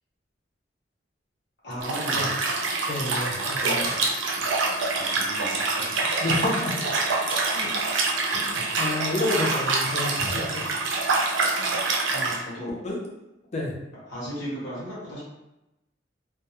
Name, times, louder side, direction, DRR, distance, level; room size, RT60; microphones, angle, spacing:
voice 1, 1.6-2.3 3.6-3.9 4.4-4.7 4.9-5.8 12.1-12.8 14.1-15.3, equal, 65° left, -9 dB, 1.0 m, -36 dB
Liquid, 1.8-12.4, right 3 dB, 85° right, 0.5 m, -26 dB
voice 2, 2.9-4.0 5.9-6.8 7.4-7.7 8.3-10.7 11.5-11.7 12.8-13.0 13.5-13.7, left 2 dB, 35° left, -2 dB, 0.5 m, -30 dB
2.2 x 2.0 x 2.9 m, 0.95 s
head